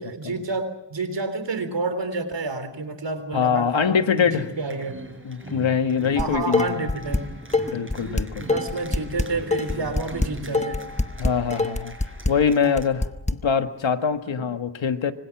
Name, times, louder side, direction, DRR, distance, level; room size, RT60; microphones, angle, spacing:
voice 1, 0.0-5.0 6.2-7.3 8.4-10.8, right 3 dB, 70° right, 10 dB, 3.6 m, -29 dB
voice 2, 3.3-4.5 5.2-6.9 7.7-8.5 11.2-11.9 12.3-13.1 13.4-15.1, left 6 dB, 85° left, 7 dB, 1.7 m, -23 dB
sound 1, 3.8-12.9, right 2 dB, 25° right, 6.2 m, -40 dB
Dishes pots and pans, 6.2-7.2 7.5-13.3, left 3 dB, 15° left, 1.1 m, -24 dB
25.5 x 25.5 x 6.0 m, 0.83 s
wide cardioid pair, 75°, 45 cm